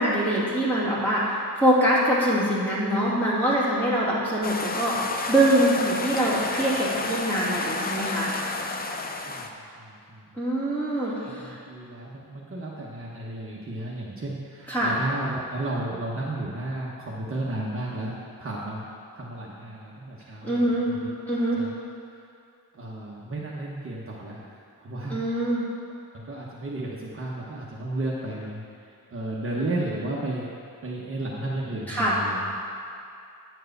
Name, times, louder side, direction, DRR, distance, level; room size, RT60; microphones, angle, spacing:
voice 1, 0.0-8.3 10.4-11.6 14.7-14.9 20.4-20.9 21.3-21.6 25.1-25.6 31.9-32.2, right 1 dB, 5° left, -9 dB, 2.6 m, -24 dB
sound 1, 4.4-9.5, left 3 dB, 25° left, 0.5 m, -31 dB
voice 2, 9.7-10.3 11.1-18.8 19.1-21.1 21.4-21.7 22.1-22.2 22.7-24.5 24.8-25.2 26.1-30.5 30.8-32.5, right 2 dB, 35° right, -5 dB, 1.0 m, -33 dB
9.9 x 4.7 x 7.9 m, 2.5 s
wide cardioid pair, 160°, 38 cm